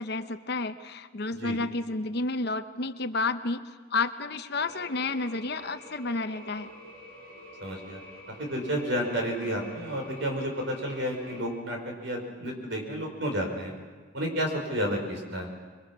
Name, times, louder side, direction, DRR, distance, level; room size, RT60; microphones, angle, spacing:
voice 1, 0.0-6.7, left 3 dB, 55° left, 10 dB, 0.9 m, -31 dB
sound 1, 4.6-11.4, equal, 55° right, 6.2 m, -47 dB
voice 2, 7.6-8.0 8.4-13.7 14.1-15.5, equal, 70° right, 2 dB, 5.3 m, -31 dB
26.5 x 22.5 x 6.1 m, 1.5 s
head